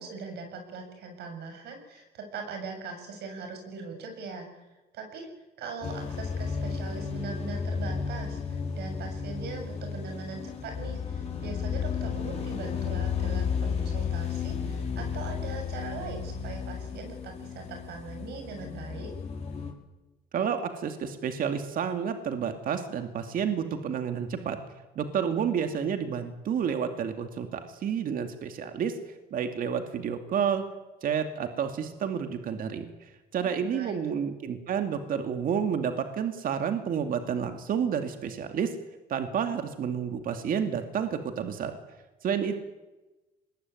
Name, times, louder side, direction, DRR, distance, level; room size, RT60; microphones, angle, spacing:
voice 1, 0.0-4.7 4.9-5.3 5.6-19.1 33.4-33.9, right 4 dB, 75° right, 5 dB, 7.4 m, -40 dB
sound 1, 5.8-19.7, left 6 dB, 40° left, 5.0 m, -33 dB
voice 2, 20.3-24.6 25.0-29.0 29.3-30.6 31.0-38.7 39.1-41.7 42.2-42.5, right 7 dB, 55° right, 7 dB, 2.5 m, -30 dB
25.0 x 21.0 x 9.7 m, 1.1 s
cardioid pair, 110°, 17 cm